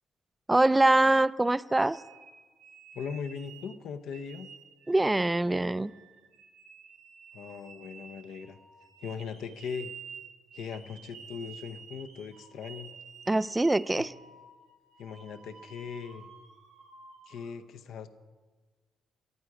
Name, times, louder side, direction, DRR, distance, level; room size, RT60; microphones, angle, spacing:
voice 1, 0.5-2.0 4.9-5.9 13.3-14.1, right 2 dB, 15° right, 17 dB, 0.4 m, -24 dB
sound 1, 1.1-3.8 4.1-17.5, right 6 dB, 85° right, 2.2 m, -51 dB
voice 2, 2.9-4.5 7.3-8.6 9.0-9.9 10.5-12.9 15.0-16.3 17.3-18.1, left 6 dB, 75° left, 8 dB, 0.8 m, -39 dB
14.0 x 11.5 x 4.9 m, 1.4 s
cardioid pair, 90°, 0 cm